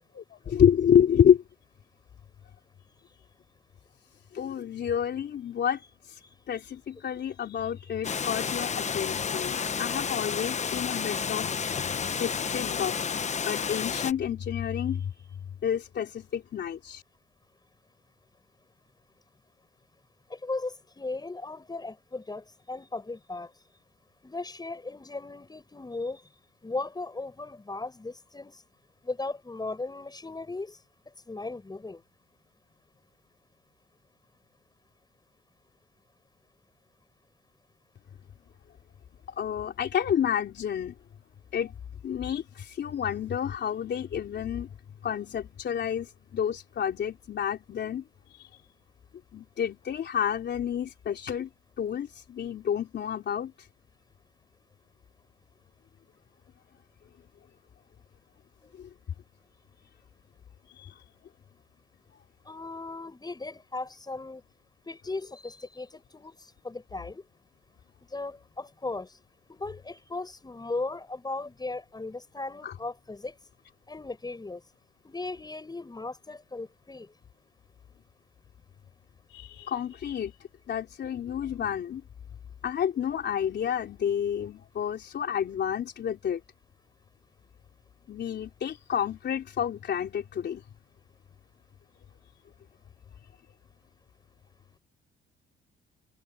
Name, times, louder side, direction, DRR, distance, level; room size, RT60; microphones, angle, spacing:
voice 1, 0.1-1.4 4.3-5.8 6.1-6.2 6.5-11.9 12.2-13.0 13.5-15.1 15.6-17.0 39.4-41.0 41.5-41.7 42.0-44.7 45.0-48.0 49.3-51.5 51.8-53.5 58.8-58.9 60.8-60.9 72.6-72.7 79.3-80.3 80.7-82.0 82.6-86.4 88.1-90.6, left 8 dB, 60° left, 3.6 m, -29 dB
Water, 8.0-14.1, left 6 dB, 35° left, 0.8 m, -31 dB
voice 2, 20.3-23.5 24.2-26.2 26.6-28.6 29.0-30.8 31.3-32.0 62.5-64.4 64.9-66.4 66.6-67.2 68.1-69.2 69.5-73.3 73.9-74.6 75.0-77.1, left 3 dB, 20° left, 7.7 m, -37 dB
cardioid pair, 90°, 20 cm